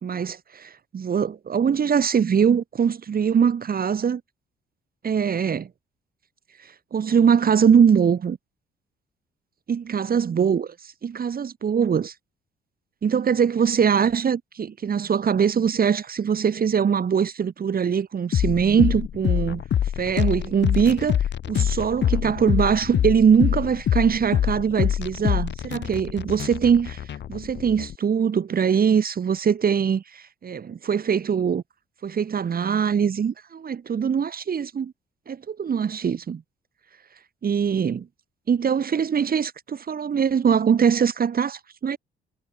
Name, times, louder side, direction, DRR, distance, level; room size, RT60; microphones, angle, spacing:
voice 1, 0.0-4.2 5.0-5.7 6.6-8.4 9.7-12.1 13.0-19.6 20.0-21.2 21.5-31.6 32.0-34.9 35.3-36.4 37.4-38.1 38.5-42.0, right 7 dB, 50° right, 4.4 m, -22 dB
sound 1, 18.3-28.0, left 10 dB, 65° left, 3.2 m, -25 dB
cardioid pair, 90°, 20 cm